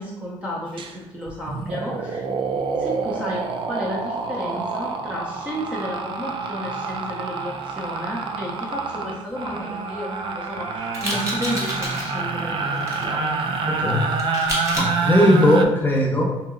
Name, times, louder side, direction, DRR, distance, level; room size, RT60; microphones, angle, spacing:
voice 1, 0.0-2.2 2.8-13.4, equal, 10° right, -5 dB, 0.6 m, -32 dB
sound 1, 0.8-0.9 1.3-15.6, right 4 dB, 55° right, 0.4 m, -27 dB
sound 2, 10.9-12.1 12.7-13.1 14.2-14.9, right 1 dB, 30° right, 1.1 m, -29 dB
voice 2, 13.7-14.2 14.8-16.3, left 1 dB, 20° left, -2 dB, 0.9 m, -18 dB
3.8 x 2.6 x 2.5 m, 1.1 s
cardioid pair, 100°, 10 cm